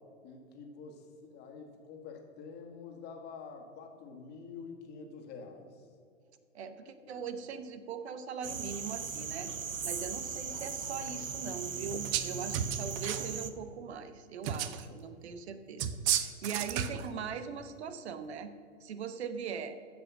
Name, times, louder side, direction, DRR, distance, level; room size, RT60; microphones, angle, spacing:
voice 1, 0.2-5.9 6.9-7.3 9.9-10.1 10.5-10.7 12.4-12.5, left 5 dB, 25° left, 3 dB, 1.9 m, -48 dB
voice 2, 6.5-9.5 9.8-18.5 18.8-19.8, right 6 dB, 55° right, 10 dB, 1.2 m, -41 dB
sound 1, 8.4-13.5, right 6 dB, 90° right, 0.8 m, -38 dB
sound 2, 11.9-12.3 12.5-13.3 14.4-14.8 15.8-17.1, right 10 dB, 25° right, 0.6 m, -32 dB
14.5 x 5.5 x 6.2 m, 2.2 s
figure-of-eight pair, 115°, 38 cm